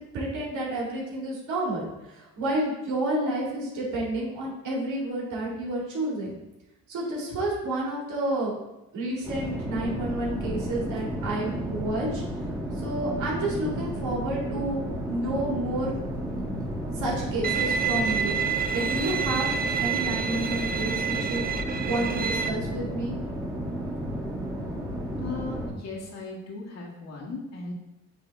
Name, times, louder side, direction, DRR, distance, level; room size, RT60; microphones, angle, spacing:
voice 1, 0.1-6.4 6.9-8.5 8.9-12.2 12.8-14.8 15.1-16.0 16.9-18.4 18.7-19.5 19.8-21.4 21.9-23.2, right 1 dB, 80° right, -4 dB, 2.4 m, -30 dB
sound 1, 9.2-25.7, equal, 10° right, 2.0 m, -32 dB
Bowed string instrument, 17.4-22.5, right 7 dB, 30° right, 0.4 m, -28 dB
voice 2, 25.2-27.7, left 3 dB, 60° left, -3 dB, 1.9 m, -37 dB
8.5 x 3.5 x 3.5 m, 0.95 s
cardioid pair, 90°, 30 cm